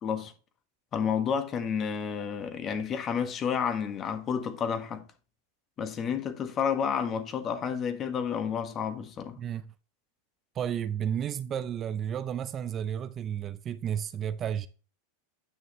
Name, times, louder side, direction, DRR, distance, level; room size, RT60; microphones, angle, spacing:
voice 1, 0.0-0.3 0.9-5.0 5.8-9.4, left 7 dB, 30° left, 1.4 m, -30 dB
voice 2, 10.6-14.7, right 9 dB, 30° right, 0.5 m, -32 dB
9.3 x 6.4 x 3.0 m
hypercardioid pair, 115°, 0 cm